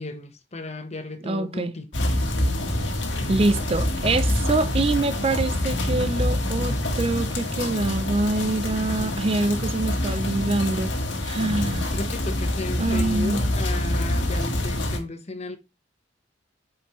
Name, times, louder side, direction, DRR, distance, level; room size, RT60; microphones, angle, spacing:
voice 1, 0.0-1.9 11.4-15.6, left 2 dB, 35° left, 1.0 m, -35 dB
voice 2, 1.2-1.7 3.3-10.9 11.2-11.9 12.8-13.5, right 2 dB, 30° right, 0.5 m, -25 dB
sound 1, 1.9-15.0, left 1 dB, 75° left, 1.7 m, -26 dB
8.2 x 5.0 x 3.1 m
head